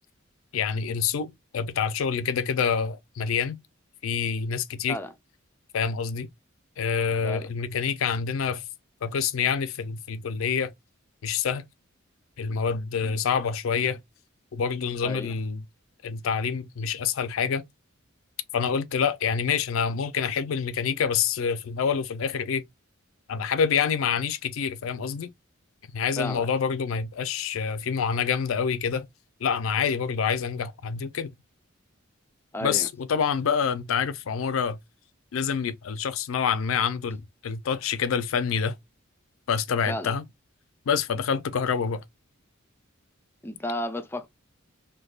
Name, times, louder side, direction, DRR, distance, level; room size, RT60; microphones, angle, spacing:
voice 1, 0.5-3.6 4.0-5.0 5.7-6.3 6.8-8.6 9.0-10.7 11.2-11.6 12.4-14.0 14.5-15.6 16.0-17.6 18.5-22.6 23.3-25.3 25.9-29.1 29.4-31.3 32.6-34.8 35.3-38.7 39.5-40.2 40.9-42.0, left 6 dB, 80° left, 0.4 m, -27 dB
voice 2, 15.0-15.4 26.2-26.5 32.5-32.9 39.9-40.2 43.4-44.3, left 1 dB, 10° left, 0.4 m, -32 dB
3.3 x 2.2 x 2.3 m
head